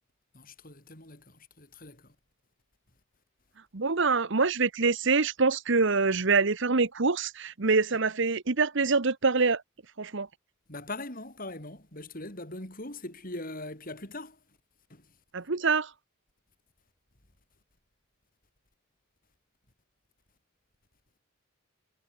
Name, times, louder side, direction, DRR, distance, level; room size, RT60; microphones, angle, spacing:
voice 1, 0.3-2.2 10.7-14.4 14.9-15.2, left 2 dB, 40° left, 7.1 m, -41 dB
voice 2, 3.7-9.6 10.0-10.3 15.3-15.9, right 4 dB, 55° right, 1.1 m, -25 dB
head